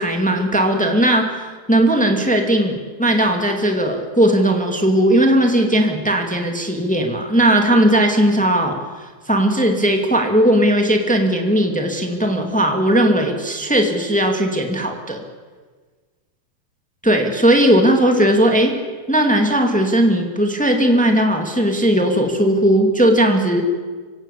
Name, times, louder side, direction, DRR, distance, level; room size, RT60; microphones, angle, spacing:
voice 1, 0.0-8.8 9.3-15.2 17.0-18.7 19.1-23.6, right 1 dB, 5° left, 3 dB, 0.8 m, -17 dB
26.0 x 17.0 x 8.5 m, 1.4 s
omnidirectional pair, 4.6 m